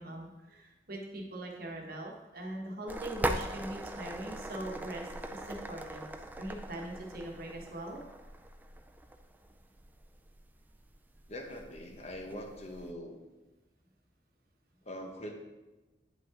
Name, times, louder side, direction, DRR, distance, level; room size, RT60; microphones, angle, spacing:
voice 1, 0.0-6.1 6.4-8.0, right 1 dB, 50° right, 0 dB, 1.3 m, -41 dB
sound 1, 2.9-12.9, right 1 dB, 10° right, 0.3 m, -41 dB
voice 2, 11.3-13.2 14.8-15.4, equal, 35° left, 3 dB, 0.8 m, -43 dB
9.1 x 5.6 x 3.7 m, 1.1 s
head